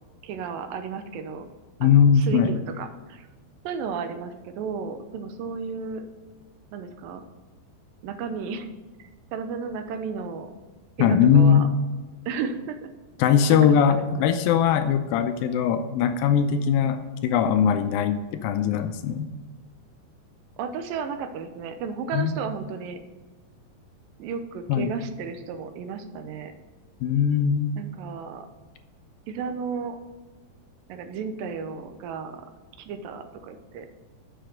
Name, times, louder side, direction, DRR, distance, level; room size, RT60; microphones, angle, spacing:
voice 1, 0.2-1.5 1.8-3.3 3.6-6.1 6.7-7.2 8.0-8.7 9.0-10.5 11.0-11.7 12.3-12.9 13.5-13.6 13.9-14.3 20.6-23.0 24.2-26.5 27.8-28.5 29.3-30.0 30.9-32.5 32.8-33.9, right 5 dB, 75° right, 8 dB, 2.4 m, -33 dB
voice 2, 1.8-2.5 11.0-11.7 13.2-19.3 22.1-22.3 24.7-24.9 27.0-27.7, left 7 dB, 80° left, 8 dB, 2.3 m, -20 dB
7.4 x 6.7 x 6.2 m, 1.3 s
omnidirectional pair, 4.2 m